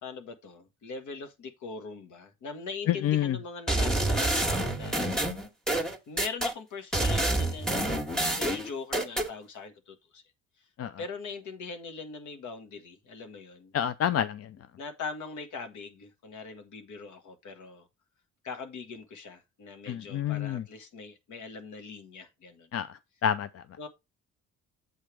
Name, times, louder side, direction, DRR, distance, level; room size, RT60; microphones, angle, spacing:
voice 1, 0.0-5.0 6.1-7.8 8.3-10.2 11.0-13.7 14.8-17.9 18.4-22.7 23.8-23.9, left 4 dB, 75° left, 1.6 m, -41 dB
voice 2, 2.9-3.4 10.8-10.9 13.7-14.5 19.9-20.6 22.7-22.9 23.2-23.6, left 10 dB, 55° left, 0.5 m, -28 dB
sound 1, 3.7-6.5 6.9-9.3, right 1 dB, ahead, 1.6 m, -27 dB
7.8 x 3.3 x 6.0 m
cardioid pair, 90°, 30 cm